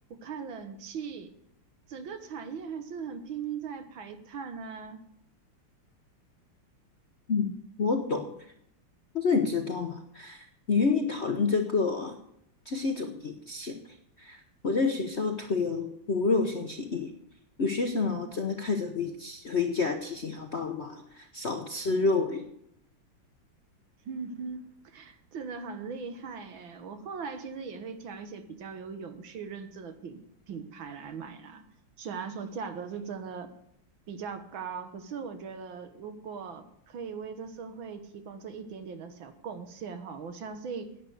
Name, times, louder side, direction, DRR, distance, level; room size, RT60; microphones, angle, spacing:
voice 1, 0.1-1.3 1.9-5.0 24.1-31.6 32.0-33.5 34.1-40.9, right 6 dB, 70° right, 8 dB, 1.9 m, -39 dB
voice 2, 7.8-8.3 9.1-12.2 12.6-17.1 17.6-22.4, left 4 dB, 45° left, 4 dB, 0.9 m, -29 dB
11.0 x 9.1 x 7.9 m, 0.72 s
omnidirectional pair, 2.3 m